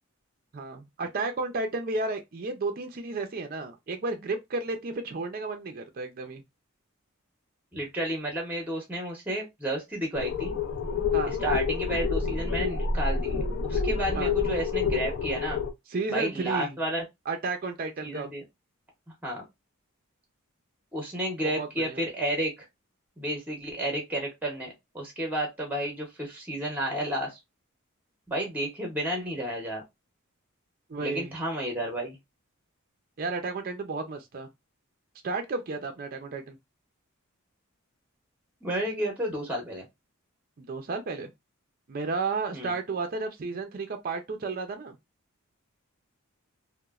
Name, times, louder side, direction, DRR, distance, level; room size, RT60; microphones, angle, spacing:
voice 1, 0.5-6.4 11.1-11.3 14.1-14.3 15.9-16.8 17.3-18.3 21.4-22.0 30.9-31.3 33.2-34.5 35.2-36.6 40.6-41.3 41.9-45.0, right 3 dB, 40° right, 0.4 m, -32 dB
voice 2, 7.7-10.5 11.2-15.6 16.1-17.0 18.0-18.4 19.2-19.4 20.9-22.7 23.2-27.4 28.3-29.8 31.0-32.2 38.6-39.9 42.5-42.7, right 1 dB, 10° right, 0.7 m, -31 dB
sound 1, 10.1-15.7, left 5 dB, 55° left, 0.4 m, -28 dB
3.0 x 2.1 x 2.3 m
head